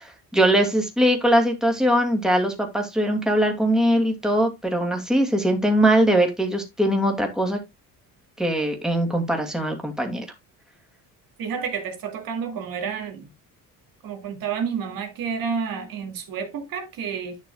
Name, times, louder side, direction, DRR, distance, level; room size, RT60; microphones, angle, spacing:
voice 1, 0.0-7.6 8.4-10.3, right 1 dB, ahead, 2.5 m, -21 dB
voice 2, 11.4-13.3 14.0-17.4, right 6 dB, 70° right, 2.3 m, -30 dB
10.5 x 6.2 x 2.3 m
cardioid pair, 100°, 37 cm